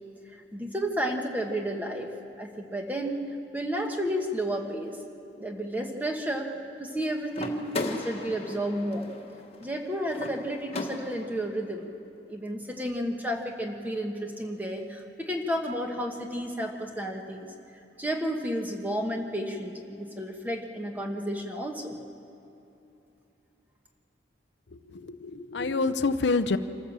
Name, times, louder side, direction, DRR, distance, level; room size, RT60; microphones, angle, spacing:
voice 1, 0.3-2.1 2.4-3.2 3.5-5.0 5.4-6.5 6.8-9.1 9.6-11.9 12.3-17.5 18.0-22.0, equal, 10° right, 2 dB, 1.3 m, -32 dB
sound 1, 7.3-11.4, left 2 dB, 35° left, 1.4 m, -36 dB
voice 2, 24.9-26.6, left 3 dB, 70° left, 10 dB, 0.6 m, -27 dB
26.0 x 14.0 x 7.5 m, 2.9 s
head